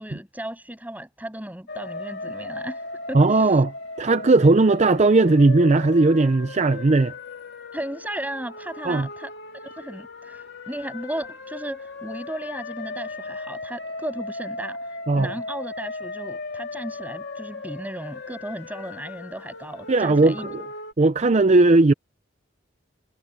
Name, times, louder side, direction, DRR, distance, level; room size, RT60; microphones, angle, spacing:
voice 1, 0.0-2.8 3.1-3.6 7.7-9.3 9.6-20.5, right 1 dB, 10° right, 7.6 m, -35 dB
sound 1, 1.7-20.9, left 3 dB, 65° left, 2.9 m, -37 dB
voice 2, 3.1-7.1 8.8-9.1 15.1-15.3 19.9-20.6 21.0-21.9, right 3 dB, 35° right, 0.5 m, -17 dB
head